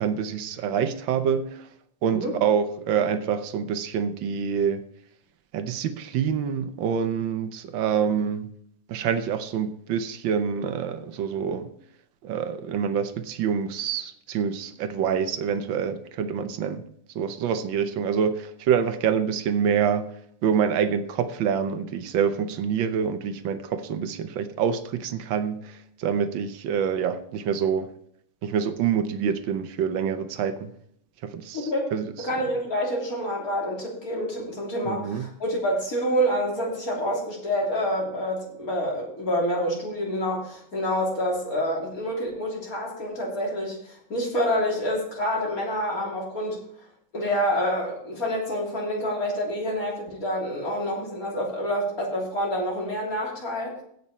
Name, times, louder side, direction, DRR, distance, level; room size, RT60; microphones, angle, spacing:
voice 1, 0.0-1.7 2.0-4.8 5.5-8.5 8.9-11.7 12.2-16.8 17.1-20.1 20.4-27.9 28.4-30.7 31.2-32.1 34.9-35.3, right 7 dB, 85° right, 10 dB, 1.6 m, -26 dB
voice 2, 31.5-31.9 32.2-46.6 47.1-53.8, equal, 50° left, -2 dB, 3.7 m, -27 dB
16.5 x 6.1 x 4.3 m, 0.68 s
omnidirectional pair, 2.0 m